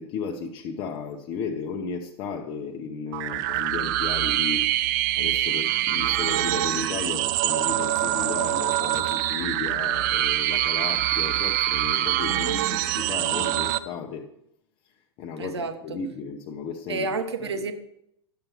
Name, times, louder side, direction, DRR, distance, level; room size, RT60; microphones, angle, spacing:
voice 1, 0.0-4.7 5.2-14.3 14.8-17.1 17.5-17.7, left 5 dB, 35° left, 2 dB, 0.8 m, -34 dB
sound 1, 3.1-13.8, right 14 dB, 40° right, 0.4 m, -25 dB
voice 2, 15.4-16.0 16.9-17.7, right 3 dB, 70° right, 8 dB, 1.1 m, -30 dB
11.5 x 7.5 x 3.1 m, 0.77 s
figure-of-eight pair, 95°, 15 cm